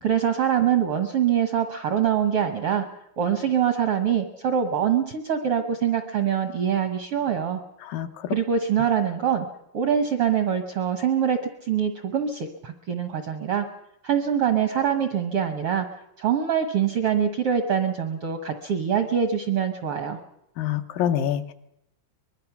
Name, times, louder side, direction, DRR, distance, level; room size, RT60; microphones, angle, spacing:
voice 1, 0.0-2.9 3.2-7.6 8.3-9.5 9.7-13.7 14.0-15.9 16.2-20.2, right 8 dB, 65° right, 6 dB, 1.4 m, -24 dB
voice 2, 7.8-8.4 20.6-21.5, left 10 dB, 75° left, 8 dB, 2.5 m, -26 dB
24.0 x 21.0 x 5.9 m, 0.79 s
omnidirectional pair, 4.0 m